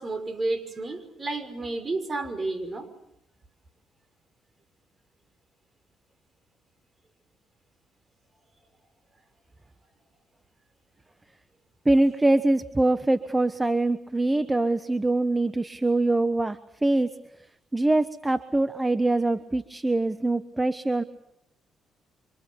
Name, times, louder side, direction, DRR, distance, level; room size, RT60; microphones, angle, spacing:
voice 1, 0.0-2.9, right 2 dB, 30° right, 5.8 m, -31 dB
voice 2, 11.8-17.1 17.7-21.0, right 2 dB, 15° right, 1.2 m, -23 dB
28.0 x 26.0 x 7.2 m
cardioid pair, 90°, 0 cm